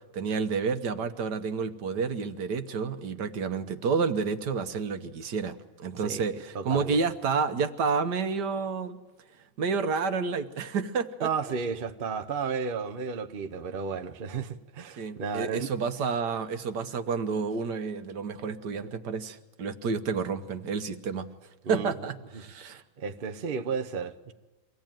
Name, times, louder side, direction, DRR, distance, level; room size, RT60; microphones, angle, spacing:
voice 1, 0.1-9.0 9.6-11.3 15.0-21.3 21.7-22.8, right 5 dB, 60° right, 1.4 m, -30 dB
voice 2, 6.0-7.0 11.2-15.7 21.6-21.9 22.3-24.3, right 5 dB, 75° right, 0.4 m, -33 dB
24.5 x 16.0 x 9.0 m
omnidirectional pair, 2.4 m